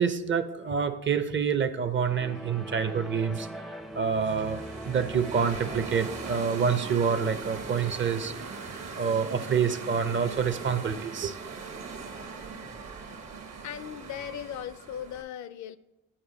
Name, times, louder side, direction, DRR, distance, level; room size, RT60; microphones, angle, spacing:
voice 1, 0.0-3.6 3.9-8.6 8.9-11.4, right 6 dB, 40° right, 0.6 m, -27 dB
sound 1, 2.1-6.7, right 1 dB, ahead, 0.4 m, -41 dB
sound 2, 3.9-15.2, right 4 dB, 60° right, 1.3 m, -40 dB
voice 2, 13.6-15.8, left 9 dB, 70° left, 0.5 m, -38 dB
8.8 x 4.8 x 4.0 m
cardioid pair, 90°, 30 cm